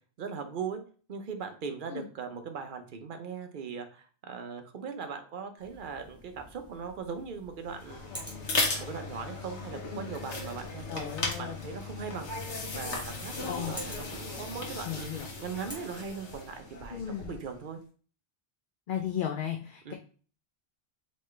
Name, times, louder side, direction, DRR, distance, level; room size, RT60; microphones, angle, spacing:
voice 1, 0.2-0.8 1.1-8.2 8.8-12.3 12.7-17.8 19.8-19.9, right 6 dB, 55° right, 7 dB, 0.8 m, -39 dB
sound 1, 5.6-15.7, equal, 5° right, 1.1 m, -51 dB
sound 2, 7.7-17.5, left 3 dB, 85° left, 1.3 m, -36 dB
voice 2, 10.9-11.5 13.5-13.7 14.9-15.3 16.9-17.3 18.9-19.9, left 9 dB, 60° left, 2 dB, 0.6 m, -35 dB
4.1 x 3.2 x 3.2 m, 0.40 s
omnidirectional pair, 1.1 m